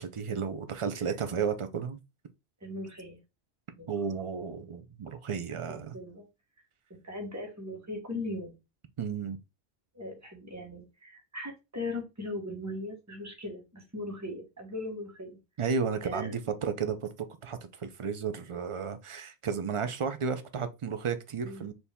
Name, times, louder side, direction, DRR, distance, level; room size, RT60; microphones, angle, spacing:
voice 1, 0.0-2.0 3.9-6.0 9.0-9.4 15.6-21.7, right 6 dB, 50° right, 0.4 m, -33 dB
voice 2, 2.6-3.2 3.8-4.1 5.9-6.2 6.9-8.6 9.9-15.4 16.0-16.3 21.4-21.7, left 2 dB, 15° right, 1.2 m, -39 dB
4.4 x 2.7 x 3.5 m
omnidirectional pair, 1.1 m